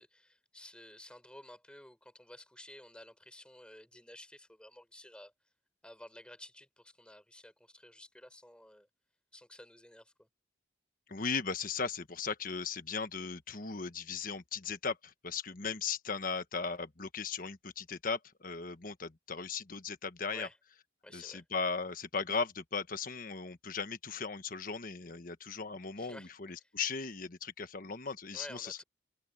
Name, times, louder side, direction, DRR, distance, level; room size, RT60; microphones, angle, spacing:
voice 1, 0.0-5.3 5.8-8.9 9.3-10.3 20.3-20.6 21.0-21.5 26.0-26.7 28.3-28.8, left 1 dB, 5° left, 4.6 m, -53 dB
voice 2, 11.1-20.5 21.1-28.8, left 5 dB, 50° left, 1.3 m, -37 dB
open air
head